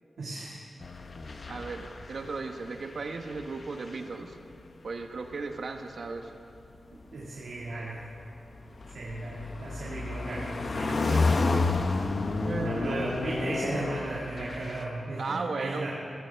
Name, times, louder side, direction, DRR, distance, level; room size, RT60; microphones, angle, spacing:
voice 1, 0.2-0.6 1.2-1.5 7.1-8.0 8.9-11.3 12.6-15.9, right 2 dB, 85° right, -6 dB, 1.9 m, -36 dB
sound 1, 0.8-2.8 3.0-4.3 5.3-5.6 7.7-14.8, left 3 dB, 55° left, 0.8 m, -30 dB
voice 2, 1.5-4.4 4.8-6.3 12.4-13.2 15.2-15.9, right 4 dB, 70° right, 5 dB, 1.0 m, -35 dB
15.5 x 15.0 x 3.4 m, 2.6 s
cardioid pair, 65°, 0 cm